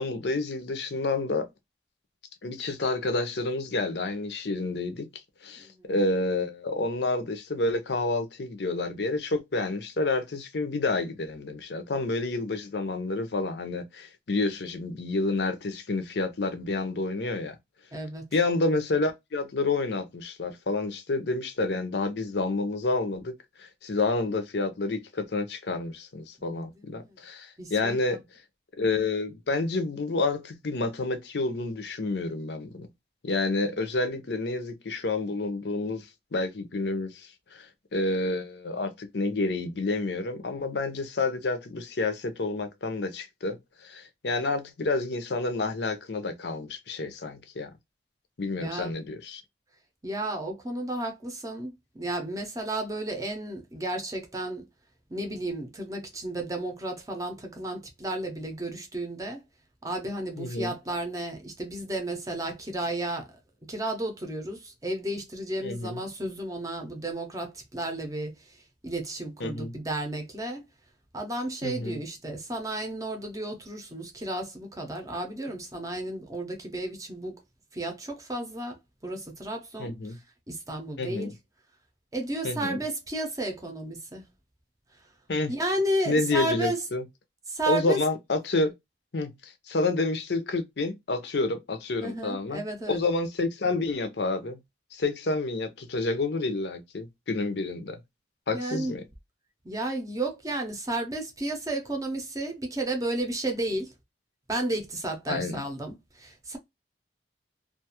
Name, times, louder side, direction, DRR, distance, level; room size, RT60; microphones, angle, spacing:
voice 1, 0.0-1.5 2.4-5.1 5.4-17.6 18.3-23.3 23.6-28.2 28.8-32.9 33.2-47.7 48.4-49.4 60.4-60.7 65.6-66.0 69.4-69.7 71.6-72.0 79.8-80.2 81.0-81.3 82.4-82.8 85.3-85.5 86.1-87.0 87.7-88.7 89.1-92.6 92.9-94.6 94.9-98.0 98.5-99.1 105.3-105.6, left 3 dB, 70° left, 0.6 m, -29 dB
voice 2, 5.6-5.9 17.9-18.3 26.5-27.2 27.6-28.2 48.6-49.0 50.0-54.7 55.1-59.4 59.8-63.4 63.7-70.6 71.1-77.4 77.7-80.0 80.5-81.3 82.1-84.2 85.5-86.8 87.5-88.0 92.0-93.0 98.5-99.0 99.6-103.9 104.5-106.6, right 1 dB, 20° right, 0.6 m, -33 dB
2.5 x 2.3 x 2.8 m
head